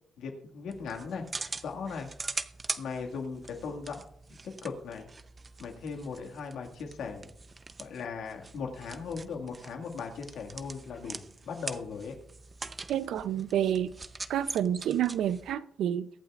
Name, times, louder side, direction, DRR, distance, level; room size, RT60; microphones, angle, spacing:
voice 1, 0.2-1.2 1.6-2.1 2.8-4.0 4.6-5.1 5.6-7.3 7.8-12.1, left 5 dB, 90° left, 1.8 m, -38 dB
sound 1, 0.7-15.5, right 3 dB, 35° right, 0.6 m, -43 dB
voice 2, 12.9-13.9 14.3-16.1, right 10 dB, 90° right, 0.5 m, -29 dB
22.5 x 8.7 x 2.4 m
cardioid pair, 85°, 0 cm